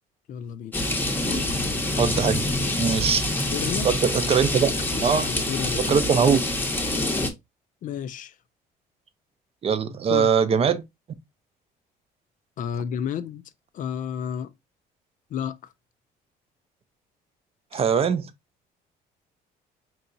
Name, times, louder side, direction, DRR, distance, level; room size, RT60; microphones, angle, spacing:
voice 1, 0.3-0.9 1.2-1.6 2.9-3.0 3.5-3.9 5.1-6.1 7.8-8.4 10.1-10.3 12.6-14.5 15.3-15.7, left 8 dB, 50° left, 0.4 m, -32 dB
sound 1, 0.7-7.3, left 1 dB, 10° left, 0.7 m, -26 dB
voice 2, 2.0-3.3 3.8-4.7 5.0-5.3 5.9-6.4 9.6-10.8 17.7-18.3, right 6 dB, 35° right, 0.5 m, -22 dB
4.5 x 2.9 x 2.5 m
cardioid pair, 110°, 17 cm